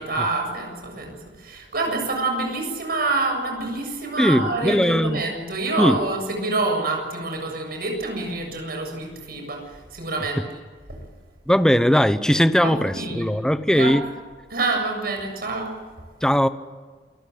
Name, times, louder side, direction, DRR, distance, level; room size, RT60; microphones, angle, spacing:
voice 1, 0.0-10.4 10.9-11.0 12.6-13.3 13.7-14.0 14.5-15.8, right 3 dB, 60° right, 3 dB, 7.3 m, -27 dB
voice 2, 4.2-5.2 5.8-6.0 11.5-14.0 16.2-16.5, equal, 5° left, 11 dB, 0.9 m, -19 dB
28.0 x 19.5 x 8.0 m, 1.5 s
head